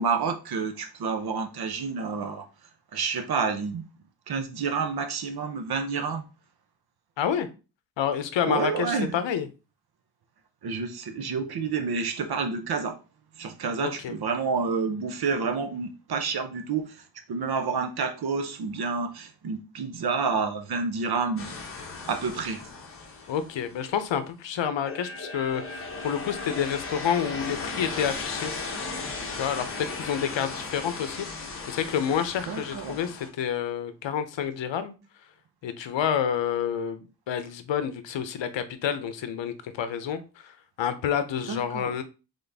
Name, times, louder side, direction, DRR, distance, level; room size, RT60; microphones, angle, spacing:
voice 1, 0.0-2.5 2.9-3.8 4.3-6.2 8.5-9.1 10.6-13.0 13.4-17.0 17.3-21.6 22.1-22.6 32.5-33.0 41.4-42.0, right 5 dB, 55° right, 0.7 m, -29 dB
voice 2, 7.2-7.5 8.0-9.5 13.8-14.1 23.3-28.5 29.4-34.9 35.6-42.0, left 8 dB, 75° left, 0.7 m, -29 dB
sound 1, 21.4-24.0 24.8-33.3, left 3 dB, 30° left, 0.8 m, -36 dB
4.0 x 3.7 x 3.4 m
wide cardioid pair, 175°, 44 cm